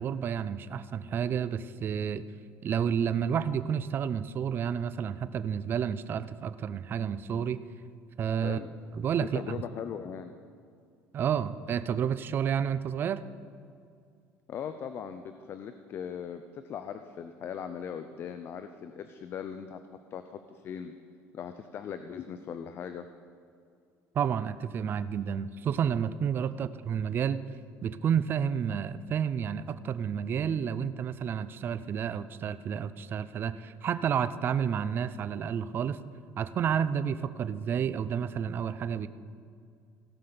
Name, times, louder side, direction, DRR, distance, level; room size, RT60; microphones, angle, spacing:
voice 1, 0.0-2.2 2.6-7.6 8.2-8.6 8.9-9.6 11.1-13.2 24.1-27.4 27.8-36.0 36.4-39.1, right 8 dB, 35° right, 14 dB, 0.5 m, -30 dB
voice 2, 8.4-8.7 9.2-10.3 14.5-19.8 20.1-20.9 21.3-23.0, left 8 dB, 40° left, 9 dB, 0.5 m, -39 dB
17.0 x 5.7 x 6.8 m, 2.3 s
cardioid pair, 135°, 6 cm